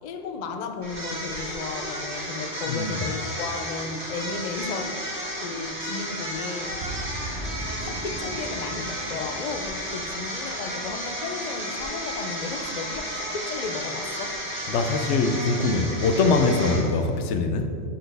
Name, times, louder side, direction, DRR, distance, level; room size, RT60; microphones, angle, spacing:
voice 1, 0.0-5.0 5.4-6.8 7.8-14.4, left 4 dB, 50° left, 0.5 m, -34 dB
sound 1, 0.8-17.1, equal, 65° right, 2.2 m, -33 dB
voice 2, 2.7-3.0 14.7-17.8, left 3 dB, 80° left, 0.9 m, -23 dB
Boom, 6.8-11.2, right 1 dB, 90° right, 1.3 m, -38 dB
12.0 x 4.4 x 3.3 m
omnidirectional pair, 1.2 m